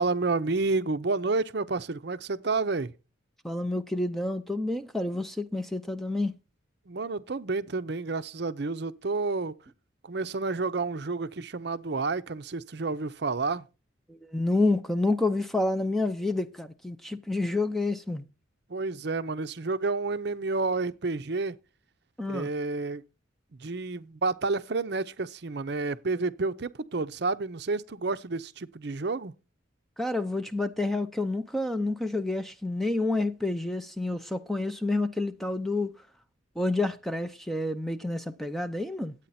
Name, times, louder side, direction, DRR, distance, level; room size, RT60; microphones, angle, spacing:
voice 1, 0.0-2.9 6.9-9.5 10.0-13.7 18.7-21.6 22.3-23.0 23.6-29.3, right 3 dB, 55° right, 0.6 m, -30 dB
voice 2, 3.4-6.3 14.1-18.3 22.2-22.5 30.0-35.9 36.6-39.1, left 2 dB, ahead, 0.5 m, -29 dB
10.5 x 8.6 x 4.2 m
head